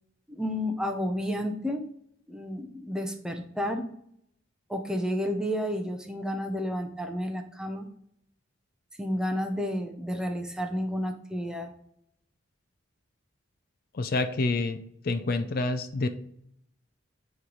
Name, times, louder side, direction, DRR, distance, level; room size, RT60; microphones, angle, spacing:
voice 1, 0.3-1.8 2.3-3.9 4.7-7.9 9.0-11.7, equal, 5° right, 4 dB, 0.6 m, -31 dB
voice 2, 13.9-16.1, left 2 dB, 50° left, 10 dB, 0.4 m, -28 dB
8.9 x 3.2 x 3.8 m, 0.70 s
head